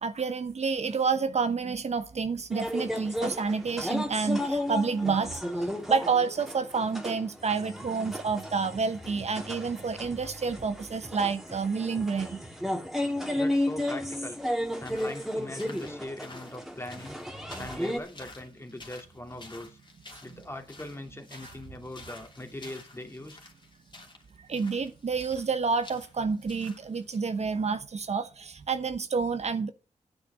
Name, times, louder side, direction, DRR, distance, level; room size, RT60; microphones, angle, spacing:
voice 1, 0.0-12.4 17.6-17.7 20.3-20.4 21.4-21.5 24.5-29.7, right 5 dB, 55° right, 1.0 m, -29 dB
sound 1, 2.5-18.0, left 1 dB, ahead, 2.5 m, -33 dB
voice 2, 13.3-14.4 14.8-17.2 17.6-19.8 20.2-23.4, left 1 dB, 20° left, 2.6 m, -41 dB
sound 2, 14.6-27.3, left 2 dB, 35° left, 2.8 m, -51 dB
9.3 x 8.2 x 6.2 m
cardioid pair, 55°, 13 cm